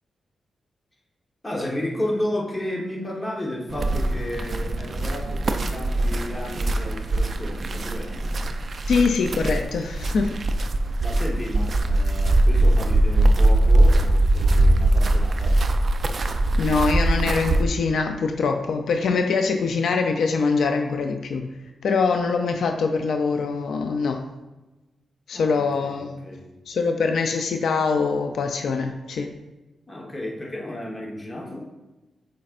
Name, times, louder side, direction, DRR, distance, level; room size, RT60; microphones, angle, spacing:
voice 1, 1.4-8.4 11.0-15.6 25.3-26.5 29.9-31.7, left 1 dB, 15° left, -2 dB, 1.2 m, -32 dB
sound 1, 3.7-17.6, right 1 dB, 40° right, 0.4 m, -21 dB
voice 2, 8.9-10.4 16.5-21.5 21.8-24.3 25.3-26.2 26.7-29.3, left 4 dB, 75° left, 5 dB, 0.5 m, -23 dB
8.3 x 5.2 x 2.5 m, 1.1 s
wide cardioid pair, 150°, 0 cm